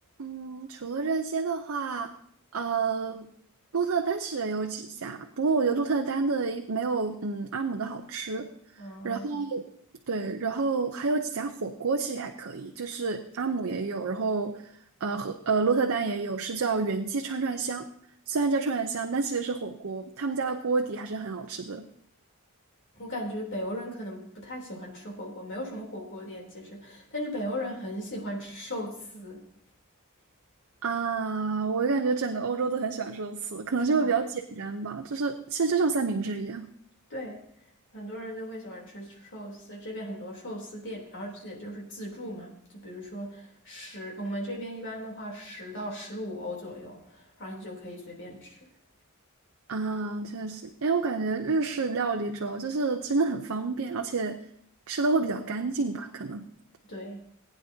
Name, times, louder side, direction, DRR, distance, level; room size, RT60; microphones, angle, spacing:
voice 1, 0.2-2.1 2.5-3.3 3.7-8.5 9.0-9.6 10.1-14.7 15.0-17.9 18.3-21.9 30.8-36.7 49.7-54.4 54.9-56.5, right 4 dB, 65° right, 4 dB, 0.7 m, -29 dB
voice 2, 8.8-9.3 23.0-29.4 34.0-34.1 37.1-37.4 37.9-48.6 56.9-57.2, equal, 55° left, -1 dB, 3.3 m, -37 dB
19.5 x 9.3 x 2.8 m, 0.68 s
head